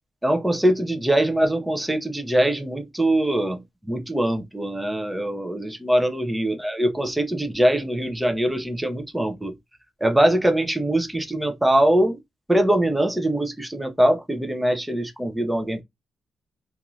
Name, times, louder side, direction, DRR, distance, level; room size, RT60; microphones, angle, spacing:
voice 1, 0.2-3.6 3.9-9.5 10.0-12.2 12.5-15.8, right 1 dB, 5° right, 0.5 m, -22 dB
2.5 x 2.3 x 3.0 m
wide cardioid pair, 155°, 0 cm